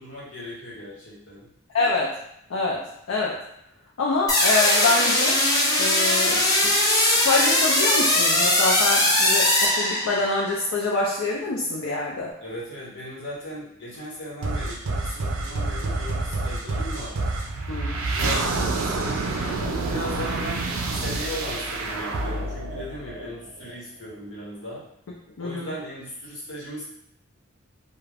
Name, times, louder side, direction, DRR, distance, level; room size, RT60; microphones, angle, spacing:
voice 1, 0.0-1.5 12.4-17.2 17.9-20.6 20.9-24.8 25.4-26.8, equal, 65° left, -6 dB, 1.0 m, -37 dB
voice 2, 1.7-2.1 2.5-2.8 3.1-3.3 4.0-5.4 5.8-12.3 17.7-18.0 25.4-25.7, left 3 dB, 85° left, -3 dB, 0.4 m, -25 dB
sound 1, 4.3-10.4, left 1 dB, 20° left, 0.5 m, -20 dB
sound 2, 14.4-23.7, right 2 dB, 80° right, 0.4 m, -28 dB
2.4 x 2.2 x 3.2 m, 0.75 s
head